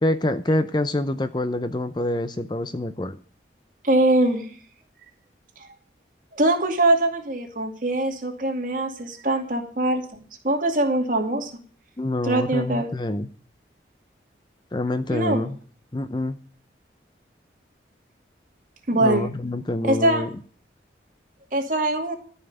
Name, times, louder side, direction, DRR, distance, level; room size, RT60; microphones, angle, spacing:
voice 1, 0.0-3.2 12.0-13.3 14.7-15.6 15.9-16.4 18.9-20.3, left 1 dB, 25° left, 11 dB, 0.6 m, -26 dB
voice 2, 3.8-4.5 6.3-11.5 12.2-12.9 15.1-15.4 18.9-19.3 19.8-20.2 21.5-22.2, right 1 dB, 45° right, 3 dB, 2.5 m, -22 dB
13.0 x 5.7 x 8.8 m, 0.43 s
head